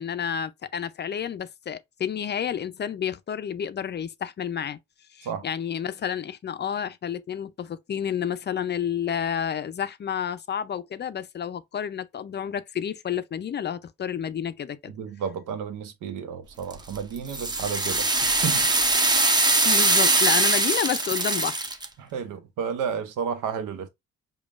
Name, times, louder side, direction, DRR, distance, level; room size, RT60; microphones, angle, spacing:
voice 1, 0.0-4.8 5.1-14.9 19.6-21.6, left 8 dB, 35° left, 0.4 m, -30 dB
voice 2, 14.9-18.7 22.0-23.9, right 7 dB, 85° right, 0.9 m, -32 dB
sound 1, 16.7-21.9, right 2 dB, 15° right, 0.6 m, -22 dB
5.1 x 2.3 x 2.4 m
cardioid pair, 90°, 30 cm